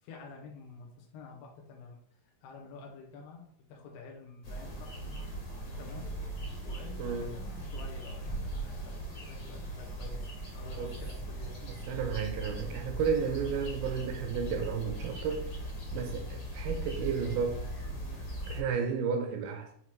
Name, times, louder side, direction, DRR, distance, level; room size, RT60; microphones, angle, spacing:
voice 1, 0.0-2.0 2.4-5.0 5.6-11.6 16.2-16.5, left 4 dB, 75° left, 2.5 m, -49 dB
sound 1, 4.4-18.6, right 1 dB, 45° left, 1.8 m, -39 dB
voice 2, 7.0-7.3 10.8-10.9 11.6-15.5 15.9-17.6 18.5-19.7, right 6 dB, 80° right, 2.3 m, -32 dB
7.2 x 3.1 x 4.5 m
omnidirectional pair, 4.5 m